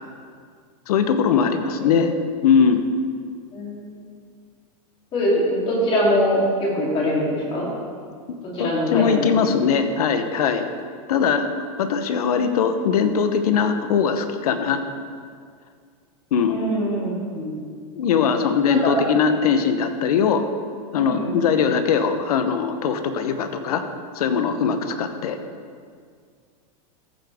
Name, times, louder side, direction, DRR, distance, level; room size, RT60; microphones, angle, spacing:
voice 1, 0.9-2.1 2.4-2.8 8.6-10.6 11.1-11.5 11.8-14.8 16.3-16.6 17.9-20.4 20.9-23.8 24.1-25.4, left 6 dB, 85° left, 8 dB, 0.9 m, -20 dB
voice 2, 3.5-4.0 5.1-7.7 8.5-9.4 16.5-17.5 18.7-18.9 20.9-21.4, equal, 30° left, -5 dB, 3.1 m, -23 dB
14.5 x 7.9 x 3.5 m, 2.1 s
supercardioid pair, 155°, 19 cm